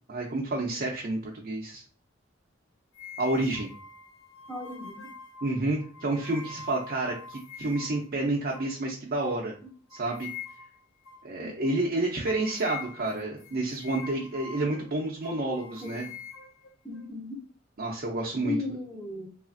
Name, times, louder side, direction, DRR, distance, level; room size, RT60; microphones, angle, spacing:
voice 1, 0.1-1.8 3.2-3.7 5.4-9.5 9.9-10.3 11.2-16.0 17.8-18.6, right 2 dB, 50° right, -1 dB, 0.5 m, -29 dB
sound 1, 2.9-8.1 8.5-8.7 9.2-9.4 9.9-10.8 11.1-11.3 11.6-11.8 12.3-14.9 15.2-17.1, left 5 dB, 85° left, 0.6 m, -44 dB
voice 2, 4.5-5.1 9.6-9.7 11.4-11.5 15.8-16.1 16.8-17.4 18.4-19.3, left 3 dB, 5° left, 0 dB, 0.6 m, -36 dB
3.2 x 2.4 x 2.5 m, 0.39 s
head